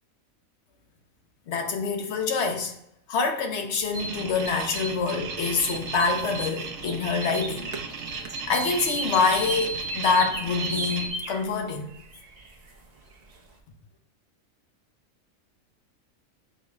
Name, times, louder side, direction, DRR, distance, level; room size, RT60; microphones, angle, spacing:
voice 1, 1.5-2.7 3.1-7.7 8.5-11.9, left 4 dB, 60° left, 0.9 m, -26 dB
sound 1, 3.8-13.6, right 3 dB, 50° right, 0.5 m, -39 dB
sound 2, 3.9-11.1, right 3 dB, 70° right, 1.0 m, -34 dB
6.8 x 2.4 x 3.0 m
omnidirectional pair, 1.4 m